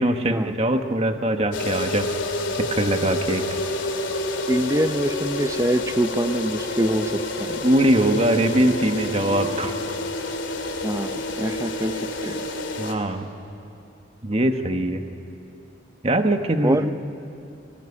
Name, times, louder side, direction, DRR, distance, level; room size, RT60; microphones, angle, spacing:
voice 1, 0.0-2.1 2.6-3.5 7.6-9.7 12.8-13.3 14.2-15.0 16.0-16.8, right 1 dB, 30° right, 6 dB, 1.2 m, -22 dB
sound 1, 1.5-12.9, left 2 dB, 80° left, 2.6 m, -28 dB
voice 2, 4.5-7.6 10.8-12.5 16.6-16.9, right 1 dB, 15° right, 10 dB, 0.7 m, -25 dB
24.0 x 20.0 x 9.8 m, 2.6 s
head